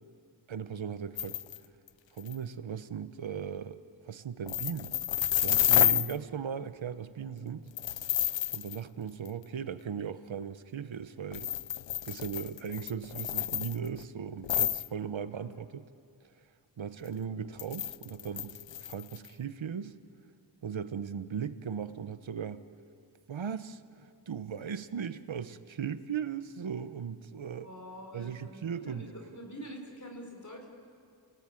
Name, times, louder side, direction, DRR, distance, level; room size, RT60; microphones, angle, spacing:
voice 1, 0.5-1.4 2.1-3.8 4.1-5.0 5.4-7.7 8.5-11.5 12.1-15.8 16.8-19.9 20.6-22.6 23.3-27.7 28.1-29.1, right 7 dB, 90° right, 12 dB, 0.9 m, -38 dB
sound 1, 1.2-1.6 1.9-2.0 2.2-2.4 4.5-6.1 7.8-8.8 9.3-9.4 11.3-14.0 14.4-14.9 17.6-19.3, left 11 dB, 75° left, 0.5 m, -30 dB
voice 2, 27.6-30.7, equal, 40° left, 1 dB, 4.2 m, -46 dB
30.0 x 17.5 x 8.9 m, 2.3 s
wide cardioid pair, 65°, 45 cm